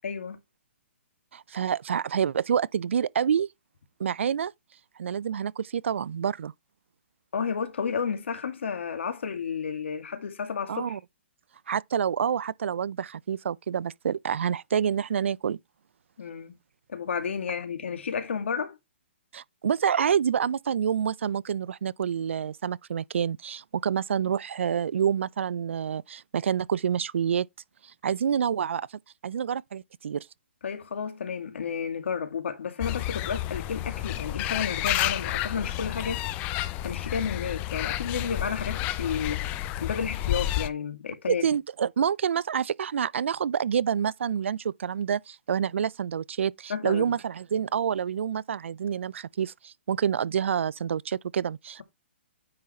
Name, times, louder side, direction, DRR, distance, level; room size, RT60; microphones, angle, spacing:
voice 1, 0.0-0.4 7.3-11.0 16.2-16.6 16.9-18.8 30.6-36.2 36.8-39.5 39.8-41.4 46.7-47.1, left 6 dB, 75° left, 2.1 m, -32 dB
voice 2, 1.3-3.5 4.0-4.5 5.0-6.5 10.7-11.0 11.7-15.6 19.3-27.5 27.8-28.9 29.2-30.3 41.3-51.8, right 8 dB, 75° right, 0.4 m, -27 dB
sound 1, 32.8-40.7, left 14 dB, 20° left, 0.5 m, -30 dB
9.7 x 3.8 x 4.2 m
hypercardioid pair, 155°, 7 cm